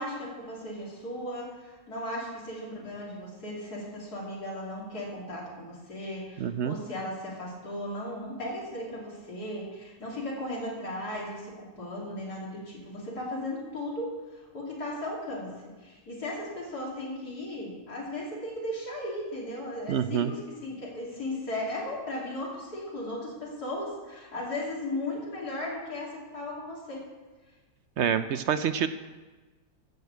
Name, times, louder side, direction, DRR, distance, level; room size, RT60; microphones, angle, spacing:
voice 1, 0.0-15.5 15.8-27.1, left 1 dB, 80° left, -5 dB, 3.6 m, -36 dB
voice 2, 6.4-6.8 19.9-20.3 28.0-28.9, right 8 dB, 65° right, 11 dB, 0.7 m, -27 dB
13.0 x 6.8 x 8.0 m, 1.3 s
omnidirectional pair, 1.6 m